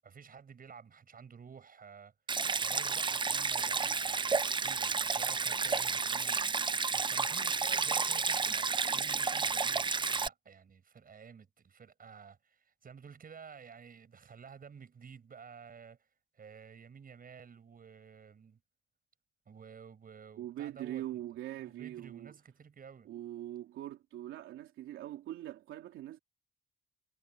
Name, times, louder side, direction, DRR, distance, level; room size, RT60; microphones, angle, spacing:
voice 1, 0.0-2.1 2.5-6.5 6.9-16.1 16.3-18.6 19.5-21.0 21.6-23.1, right 6 dB, 45° right, 7.5 m, -52 dB
Stream, 2.3-10.3, right 4 dB, 25° right, 0.6 m, -31 dB
voice 2, 20.4-22.3 23.0-26.2, right 13 dB, 90° right, 3.1 m, -42 dB
cardioid pair, 90°, 20 cm